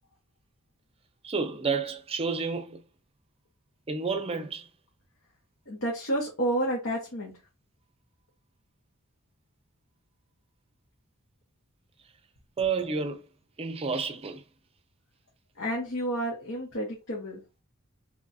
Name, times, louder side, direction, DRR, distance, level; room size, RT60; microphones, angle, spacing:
voice 1, 1.2-2.8 3.9-4.7 12.6-13.2 13.6-14.4, right 5 dB, 25° right, 0.5 m, -30 dB
voice 2, 5.7-7.3 15.6-17.4, right 1 dB, 60° left, 1.0 m, -30 dB
3.0 x 2.4 x 4.0 m
head